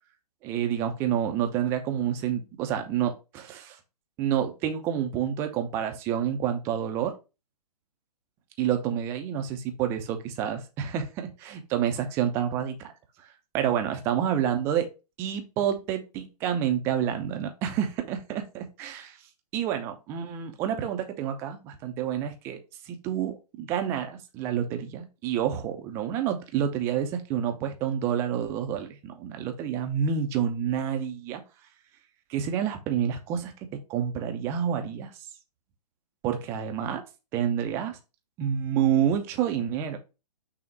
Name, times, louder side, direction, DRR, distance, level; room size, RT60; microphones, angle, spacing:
voice 1, 0.4-3.8 4.2-7.2 8.6-12.9 13.5-14.9 15.2-19.2 19.5-31.4 32.3-35.1 36.2-37.0 37.3-38.0 38.4-40.0, right 9 dB, 10° right, 6 dB, 0.4 m, -28 dB
6.0 x 2.1 x 4.0 m, 0.29 s
figure-of-eight pair, 125°, 20 cm